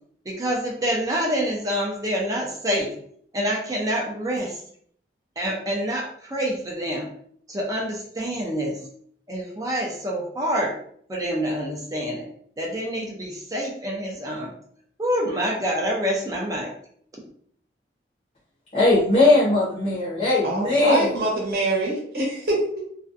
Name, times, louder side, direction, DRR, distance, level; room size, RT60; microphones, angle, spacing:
voice 1, 0.3-2.9 3.3-4.6 5.4-7.1 7.5-8.8 9.3-10.7 11.1-12.3 12.6-14.5 15.0-16.7, equal, 20° right, 0.4 m, -27 dB
voice 2, 18.7-21.1, left 2 dB, 40° left, 0.7 m, -19 dB
voice 3, 20.4-22.8, right 1 dB, 55° right, 0.8 m, -24 dB
2.5 x 2.1 x 2.5 m
head